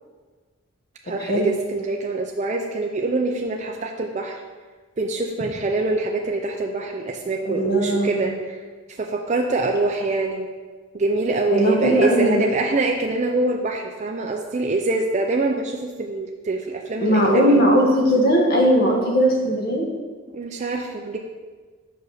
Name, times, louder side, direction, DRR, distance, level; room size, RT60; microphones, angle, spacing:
voice 1, 1.1-4.4 5.0-8.6 9.0-10.5 10.9-17.6 20.3-21.2, right 2 dB, 35° right, 2 dB, 0.4 m, -24 dB
voice 2, 7.5-8.2 11.5-12.4 17.0-19.9, equal, 45° left, -1 dB, 1.3 m, -18 dB
5.3 x 5.0 x 6.3 m, 1.4 s
head